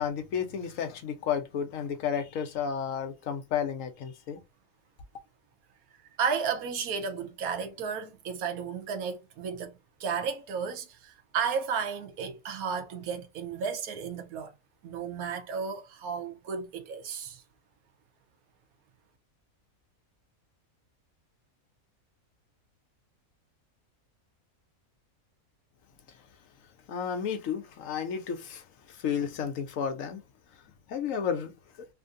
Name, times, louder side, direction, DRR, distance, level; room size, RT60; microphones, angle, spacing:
voice 1, 0.0-4.4 26.9-30.2 30.9-31.5 31.8-31.9, left 7 dB, 70° left, 1.1 m, -32 dB
voice 2, 6.2-14.5 14.8-17.4, right 6 dB, 90° right, 1.2 m, -33 dB
3.2 x 2.6 x 2.5 m
omnidirectional pair, 1.5 m